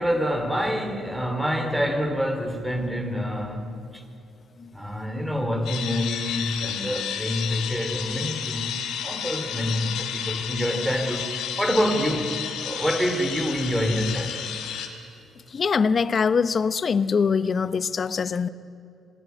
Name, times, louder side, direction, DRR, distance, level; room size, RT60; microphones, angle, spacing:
voice 1, 0.0-4.0 4.7-12.4 12.6-14.5, equal, 5° right, 3.3 m, -27 dB
sound 1, 5.7-14.9, left 8 dB, 80° left, 2.8 m, -32 dB
voice 2, 15.5-18.5, left 5 dB, 45° left, 0.9 m, -23 dB
27.0 x 18.5 x 9.5 m
cardioid pair, 90°, 0 cm